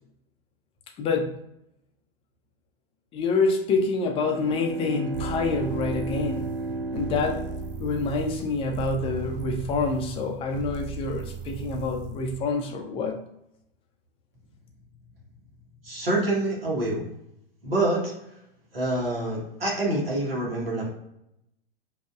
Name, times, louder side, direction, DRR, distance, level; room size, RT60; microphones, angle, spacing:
voice 1, 1.0-1.3 3.1-6.5 6.9-7.4 7.8-13.2, left 3 dB, 20° left, 3 dB, 0.5 m, -27 dB
Bowed string instrument, 4.0-8.6, right 2 dB, 90° right, 0.5 m, -34 dB
sound 1, 5.1-12.4, right 5 dB, 45° right, 0.6 m, -37 dB
voice 2, 15.8-17.1 17.6-18.1 18.7-20.9, right 2 dB, 75° right, -4 dB, 1.4 m, -26 dB
5.0 x 2.8 x 2.4 m, 0.79 s
figure-of-eight pair, 100°, 29 cm